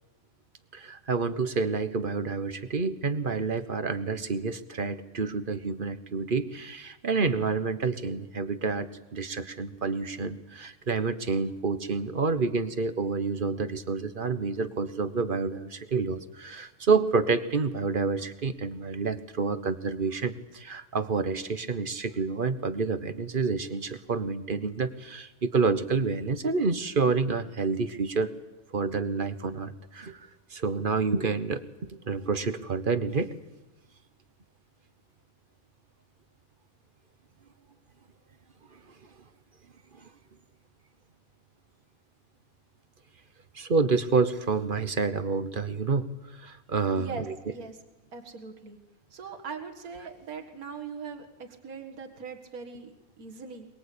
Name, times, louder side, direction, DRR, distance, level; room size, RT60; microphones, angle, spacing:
voice 1, 0.7-28.3 28.7-33.3 38.7-38.8 39.9-40.1 43.5-47.1, right 4 dB, 40° right, 12 dB, 1.2 m, -28 dB
voice 2, 46.9-47.8 48.1-48.8 49.1-52.9 53.2-53.7, right 5 dB, 80° right, 3 dB, 2.2 m, -40 dB
23.0 x 21.5 x 8.6 m, 1.1 s
omnidirectional pair, 1.5 m